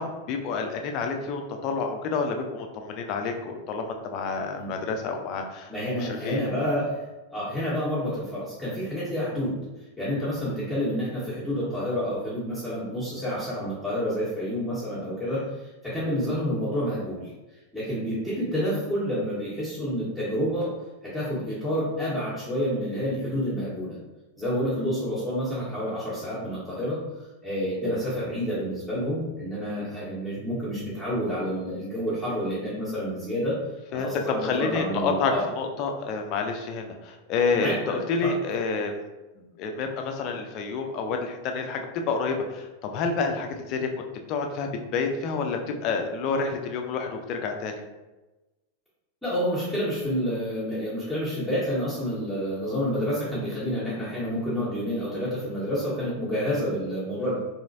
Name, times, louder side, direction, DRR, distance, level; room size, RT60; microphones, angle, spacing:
voice 1, 0.0-5.7 6.0-6.4 33.9-34.1 34.4-39.0 39.6-47.8, left 4 dB, 40° left, 4 dB, 0.5 m, -29 dB
voice 2, 5.7-7.0 7.3-9.6 10.0-17.3 17.7-20.7 21.0-24.0 24.4-27.0 27.4-33.6 33.9-35.4 37.5-38.3 49.2-57.4, equal, ahead, -12 dB, 1.2 m, -29 dB
3.1 x 3.0 x 2.6 m, 1.1 s
figure-of-eight pair, 90°, 0 cm